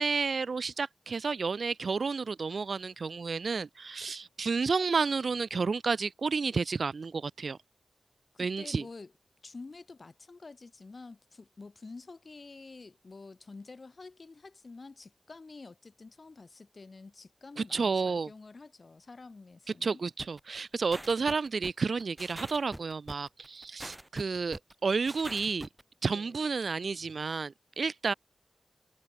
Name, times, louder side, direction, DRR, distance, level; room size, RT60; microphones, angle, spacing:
voice 1, 0.0-7.6 8.4-8.9 17.6-18.3 19.8-25.7 26.0-28.1, right 4 dB, 70° right, 0.7 m, -31 dB
voice 2, 8.3-9.1 9.4-20.0 26.1-26.4, left 3 dB, 50° left, 3.1 m, -49 dB
sound 1, 20.2-25.8, right 1 dB, 10° right, 3.2 m, -44 dB
wide cardioid pair, 80°, 0 cm